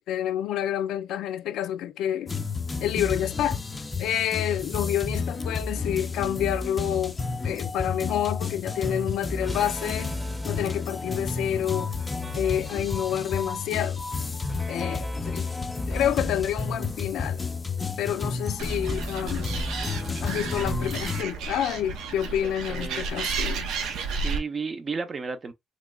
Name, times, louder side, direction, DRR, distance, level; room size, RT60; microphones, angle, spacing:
voice 1, 0.0-2.4 2.8-3.6 4.0-7.2 7.4-10.1 10.4-11.9 12.3-14.0 14.7-15.5 15.9-17.4 18.0-19.6 20.2-23.7, left 10 dB, 85° left, 0.4 m, -28 dB
sound 1, 2.3-21.2, left 4 dB, 25° left, 0.4 m, -31 dB
sound 2, 9.4-17.9, equal, 10° right, 0.8 m, -43 dB
Animal, 18.6-24.4, right 4 dB, 90° right, 0.6 m, -32 dB
voice 2, 22.4-23.0 23.8-23.9 24.2-25.5, right 4 dB, 40° right, 0.6 m, -33 dB
3.0 x 3.0 x 2.3 m
cardioid pair, 90°, 0 cm